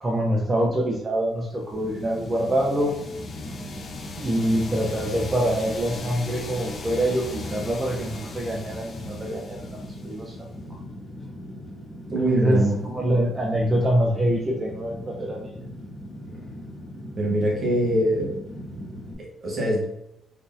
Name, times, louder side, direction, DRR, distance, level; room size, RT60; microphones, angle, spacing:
voice 1, 0.0-2.9 4.1-10.3 12.3-15.6, right 1 dB, 20° right, -3 dB, 0.4 m, -25 dB
Fire, 1.7-19.1, equal, 15° left, 1.5 m, -39 dB
sound 1, 1.8-10.5, left 3 dB, 40° left, 0.4 m, -39 dB
voice 2, 12.1-12.7 17.2-18.3 19.2-19.8, right 1 dB, 45° right, -2 dB, 1.1 m, -23 dB
3.9 x 2.6 x 2.5 m, 0.84 s
cardioid pair, 160°, 0 cm